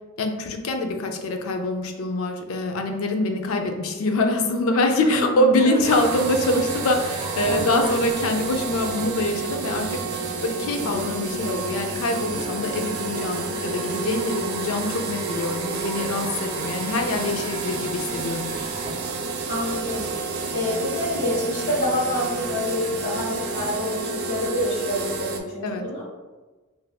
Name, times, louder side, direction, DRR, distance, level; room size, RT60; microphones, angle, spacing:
voice 1, 0.2-18.5 25.6-25.9, left 2 dB, 75° left, 4 dB, 0.4 m, -24 dB
voice 2, 5.0-5.9 7.5-8.0 19.5-26.0, left 1 dB, 50° left, -6 dB, 1.2 m, -27 dB
sound 1, 5.6-8.7 9.0-9.1 9.5-9.6 10.3-10.4 12.2-19.6 19.9-20.0 20.7-20.8 21.3-21.5 21.9-22.9 23.4-23.8 25.0-25.1 25.3-25.4, right 1 dB, 25° left, 1.5 m, -40 dB
sound 2, 5.8-25.4, right 4 dB, 50° right, 0.3 m, -30 dB
3.3 x 2.7 x 2.2 m, 1.3 s
head